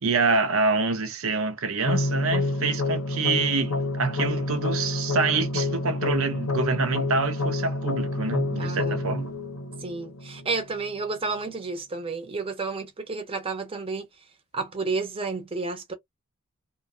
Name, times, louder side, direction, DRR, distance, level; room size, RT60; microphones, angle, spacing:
voice 1, 0.0-9.3, right 4 dB, 65° right, 0.6 m, -26 dB
sound 1, 1.9-10.8, left 2 dB, 85° left, 0.8 m, -28 dB
voice 2, 8.6-9.1 9.8-14.1 14.5-15.9, right 3 dB, 25° right, 0.7 m, -31 dB
2.5 x 2.2 x 2.4 m
head